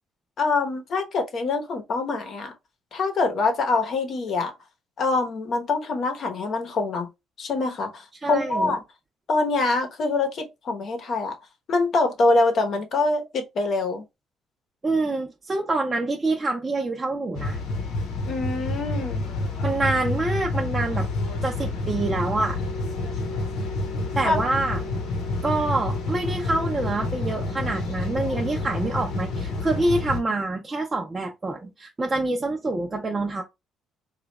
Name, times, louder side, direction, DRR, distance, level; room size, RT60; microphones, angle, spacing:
voice 1, 0.4-2.5 2.9-4.5 5.0-7.1 7.4-8.8 9.3-11.4 11.7-14.0 18.3-19.2 24.2-24.4, left 3 dB, 55° left, 0.9 m, -24 dB
voice 2, 8.2-8.8 14.8-17.6 19.6-21.1 21.4-22.6 24.1-24.8 25.4-33.4, right 2 dB, 25° right, 0.6 m, -26 dB
sound 1, 17.3-30.2, left 2 dB, 80° left, 0.9 m, -28 dB
3.2 x 2.4 x 3.0 m
cardioid pair, 95°, 0 cm